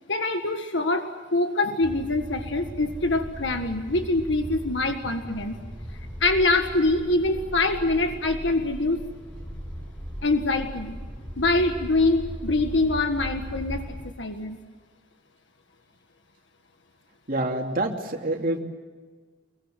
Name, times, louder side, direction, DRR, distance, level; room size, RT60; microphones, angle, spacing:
voice 1, 0.1-5.6 6.2-9.0 10.2-10.9 11.4-13.8 14.2-14.6, left 2 dB, 80° left, 6 dB, 1.7 m, -24 dB
sound 1, 1.8-14.0, equal, 5° left, 5.6 m, -38 dB
voice 2, 17.3-18.6, right 1 dB, 50° right, 1 dB, 3.0 m, -27 dB
26.0 x 22.5 x 7.7 m, 1.5 s
head